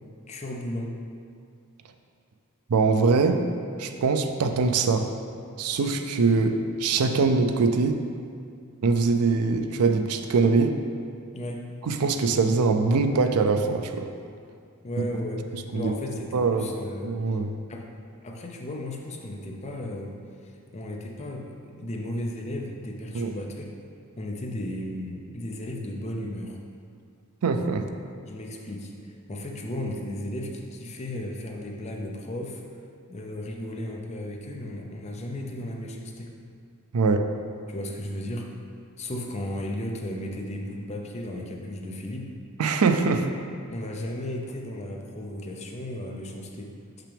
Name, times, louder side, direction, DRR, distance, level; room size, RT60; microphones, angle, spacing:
voice 1, 0.3-0.9 11.3-11.6 14.8-17.4 17.7-17.8 18.2-20.2 20.4-23.7 24.2-26.6 28.2-32.6 33.1-36.3 37.7-38.5 39.0-42.3 43.7-46.7, left 1 dB, 30° left, 1 dB, 0.6 m, -35 dB
voice 2, 2.7-3.4 3.8-5.1 5.6-8.0 8.8-10.8 11.9-14.1 15.7-15.9 16.3-16.7 17.0-17.5 23.1-23.3 27.4-27.9 36.9-37.3 42.6-43.3, right 4 dB, 85° right, 7 dB, 0.5 m, -23 dB
6.0 x 5.8 x 3.4 m, 2.3 s
head